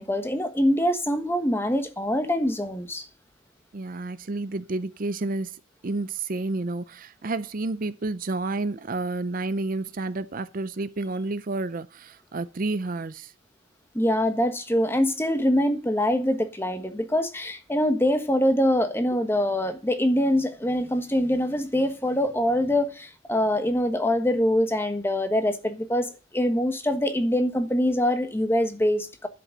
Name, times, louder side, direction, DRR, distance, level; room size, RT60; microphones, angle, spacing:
voice 1, 0.0-3.1 13.9-29.3, left 1 dB, 10° left, 1.3 m, -24 dB
voice 2, 3.7-5.6 5.8-13.3, right 2 dB, 40° right, 0.5 m, -30 dB
11.0 x 7.8 x 6.5 m
head